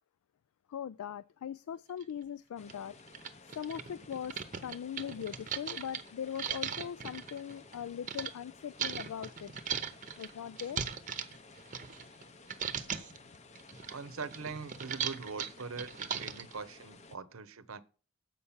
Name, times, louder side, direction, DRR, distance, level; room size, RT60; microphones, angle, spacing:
voice 1, 0.7-3.0 3.5-9.5 10.2-10.8, left 8 dB, 85° left, 0.3 m, -40 dB
sound 1, 2.0-2.1 2.7-2.8 3.1-8.3 8.8-12.2 12.5-13.2 13.5-16.5, right 7 dB, 35° right, 0.8 m, -38 dB
sound 2, 2.6-17.2, left 3 dB, 30° left, 0.6 m, -55 dB
voice 2, 13.9-17.8, right 4 dB, 75° right, 0.8 m, -42 dB
7.6 x 5.7 x 7.1 m
head